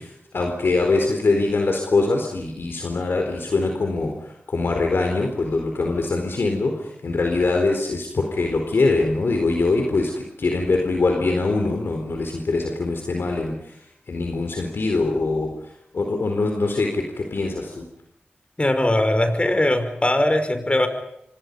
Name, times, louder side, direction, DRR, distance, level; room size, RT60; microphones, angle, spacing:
voice 1, 0.0-10.1 10.4-15.5 15.9-17.9, left 3 dB, 75° left, 3 dB, 4.2 m, -23 dB
voice 2, 18.6-20.9, left 1 dB, 30° left, 8 dB, 5.4 m, -20 dB
29.0 x 25.5 x 5.5 m, 0.78 s
cardioid pair, 45°, 4 cm